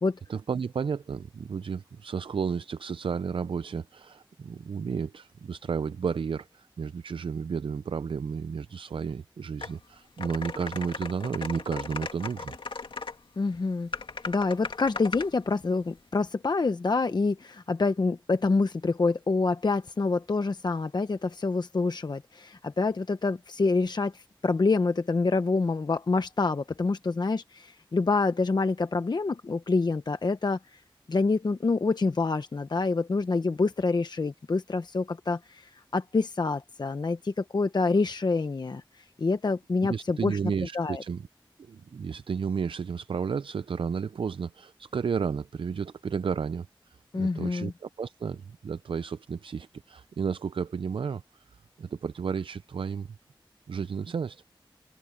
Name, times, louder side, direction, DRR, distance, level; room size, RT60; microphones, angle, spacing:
voice 1, 0.3-12.5 39.8-41.2 41.6-51.4 51.8-53.1 53.7-54.4, right 6 dB, 75° right, 0.4 m, -32 dB
sound 1, 9.6-9.7 10.2-13.1 13.9-15.3, left 4 dB, 75° left, 2.0 m, -37 dB
voice 2, 13.4-13.9 14.3-30.8 31.1-38.8 39.2-40.4 40.7-41.0 47.1-47.7, left 3 dB, 55° left, 0.9 m, -27 dB
wide cardioid pair, 80°, 9 cm